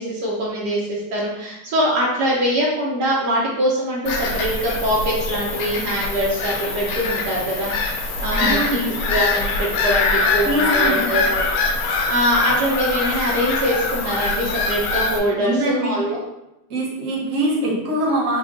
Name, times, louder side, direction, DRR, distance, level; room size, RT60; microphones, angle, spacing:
voice 1, 0.0-7.7 8.2-11.4 12.1-16.2, equal, 75° right, -5 dB, 1.2 m, -23 dB
Bird vocalization bird call bird song / Gull seagull, 4.1-15.2, left 3 dB, 85° left, 1.2 m, -23 dB
voice 2, 8.3-8.9 10.4-11.1 15.4-15.9 16.7-18.4, right 1 dB, 55° right, -4 dB, 1.2 m, -23 dB
3.3 x 2.3 x 3.8 m, 0.91 s
omnidirectional pair, 1.8 m